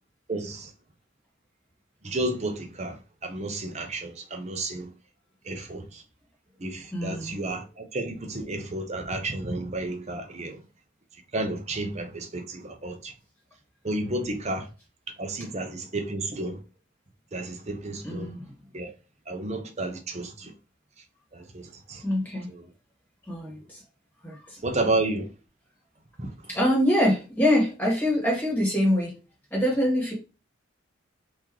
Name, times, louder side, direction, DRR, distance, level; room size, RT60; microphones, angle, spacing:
voice 1, 0.3-0.7 2.0-4.9 5.5-6.0 6.6-10.6 11.3-13.1 13.8-14.7 15.2-16.6 17.3-18.3 18.7-18.9 19.3-20.5 21.3-22.0 22.5-22.6 24.6-25.3 26.2-26.3, right 2 dB, 35° right, 0.7 m, -31 dB
voice 2, 6.9-7.4 18.0-18.5 22.0-22.5 23.3-23.8 24.2-24.6 26.5-29.2 29.5-30.1, left 1 dB, 10° left, 1.6 m, -24 dB
3.1 x 2.9 x 3.7 m
head